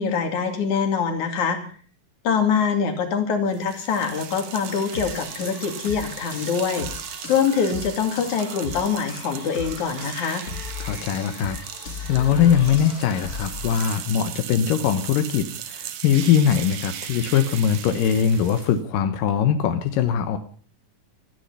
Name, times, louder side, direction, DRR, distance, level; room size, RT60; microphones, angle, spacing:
voice 1, 0.0-1.6 2.2-6.9 7.3-10.4, left 6 dB, 65° left, 6 dB, 3.8 m, -24 dB
sound 1, 3.5-18.8, right 10 dB, 65° right, 2.4 m, -37 dB
sound 2, 4.7-14.0, left 4 dB, 40° left, 1.3 m, -37 dB
voice 2, 10.8-11.6 12.1-20.4, left 8 dB, 90° left, 8 dB, 2.8 m, -21 dB
17.5 x 13.5 x 5.6 m, 0.43 s
omnidirectional pair, 3.8 m